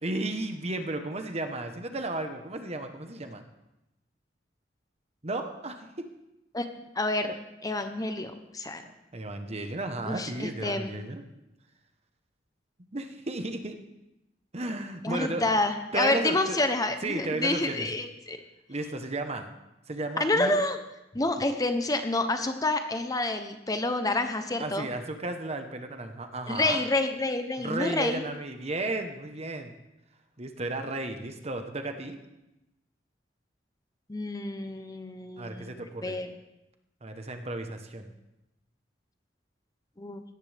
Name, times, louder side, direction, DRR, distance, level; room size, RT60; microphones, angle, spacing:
voice 1, 0.0-3.4 5.2-6.1 8.8-11.2 12.9-13.8 14.5-15.5 15.9-16.6 17.0-17.9 18.7-19.5 19.9-20.6 24.6-26.8 27.6-29.7 30.4-32.2 35.4-36.2 37.0-38.1, right 2 dB, 35° right, 6 dB, 1.1 m, -34 dB
voice 2, 7.0-7.4 7.6-8.8 10.0-10.9 15.0-18.4 20.2-20.8 21.1-24.9 26.5-28.2 34.1-36.3 40.0-40.2, left 2 dB, 20° left, 7 dB, 0.9 m, -28 dB
17.5 x 14.0 x 3.5 m, 0.93 s
head